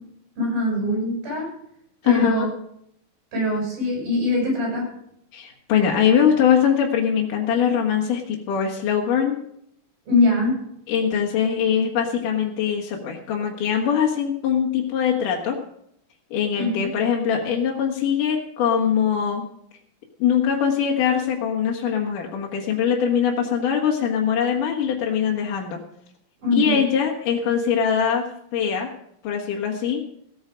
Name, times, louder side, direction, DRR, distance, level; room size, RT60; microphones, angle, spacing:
voice 1, 0.4-1.5 2.0-2.5 3.3-4.9 10.1-10.6 16.6-16.9 26.4-26.8, left 1 dB, 80° right, -1 dB, 9.4 m, -22 dB
voice 2, 2.0-2.5 5.3-9.4 10.9-15.6 16.3-19.4 20.2-25.8 26.5-28.2 28.5-28.9 29.2-30.0, left 8 dB, 65° left, 0 dB, 3.1 m, -22 dB
16.5 x 9.4 x 5.1 m, 0.72 s
omnidirectional pair, 4.1 m